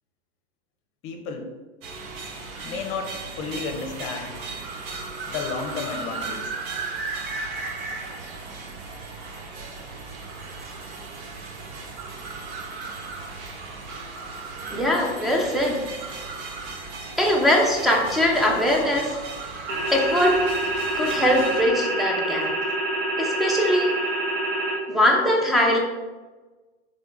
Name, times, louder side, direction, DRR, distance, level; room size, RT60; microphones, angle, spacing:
voice 1, 1.0-1.5 2.6-4.4 5.3-6.5, left 5 dB, 40° left, 4 dB, 0.8 m, -32 dB
sound 1, 1.8-21.6, right 4 dB, 50° right, 0.9 m, -36 dB
voice 2, 14.7-15.8 17.2-19.2 19.9-20.4 21.0-22.5 23.2-24.0 24.9-25.8, left 1 dB, ahead, -1 dB, 0.7 m, -21 dB
sound 2, 19.7-24.8, right 1 dB, 70° right, 1.4 m, -26 dB
3.5 x 3.3 x 3.9 m, 1.2 s
hypercardioid pair, 120°, 33 cm